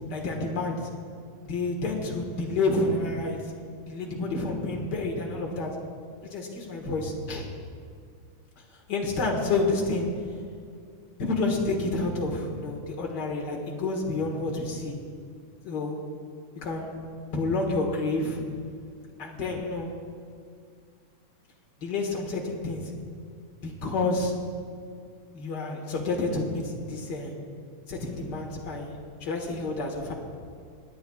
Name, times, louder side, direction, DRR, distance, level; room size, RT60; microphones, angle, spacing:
voice 1, 0.1-0.8 1.4-3.5 3.9-5.8 6.2-7.5 8.9-10.1 11.2-15.0 15.6-16.0 16.6-17.0 17.3-18.4 19.2-19.9 21.8-22.8 23.6-24.3 25.3-27.3 27.9-30.1, left 3 dB, 45° left, 0 dB, 1.7 m, -29 dB
23.5 x 10.0 x 2.4 m, 2.2 s
omnidirectional pair, 3.3 m